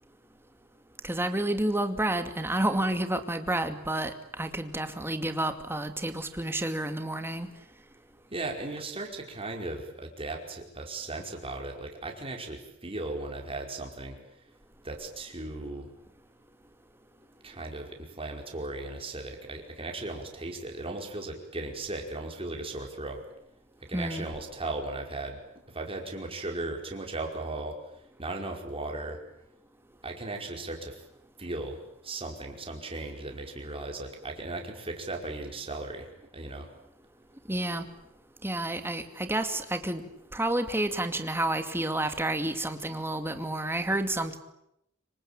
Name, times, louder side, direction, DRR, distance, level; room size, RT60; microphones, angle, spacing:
voice 1, 1.0-7.5 23.9-24.3 37.5-37.8 38.4-44.4, right 1 dB, 10° right, 7 dB, 2.3 m, -30 dB
voice 2, 8.3-14.2 14.8-15.9 17.4-23.2 23.8-25.4 25.7-27.8 28.2-29.2 30.0-31.0 31.4-36.7, right 2 dB, 25° right, 2 dB, 5.1 m, -37 dB
26.5 x 24.5 x 8.9 m, 0.80 s
head